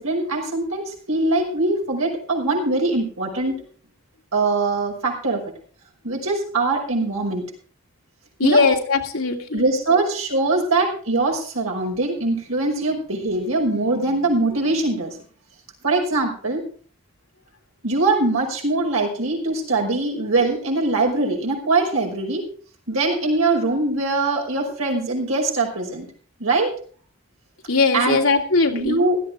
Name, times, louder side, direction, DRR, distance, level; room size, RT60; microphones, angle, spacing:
voice 1, 0.0-3.6 4.3-5.4 6.0-7.4 8.4-8.7 9.5-15.2 15.8-16.6 17.8-22.5 22.9-26.1 26.4-26.7 27.9-28.2 28.7-29.2, right 2 dB, 90° right, 1 dB, 5.7 m, -22 dB
voice 2, 8.4-9.6 27.7-29.0, left 3 dB, 80° left, 2 dB, 2.6 m, -19 dB
16.5 x 13.0 x 3.6 m, 0.42 s
head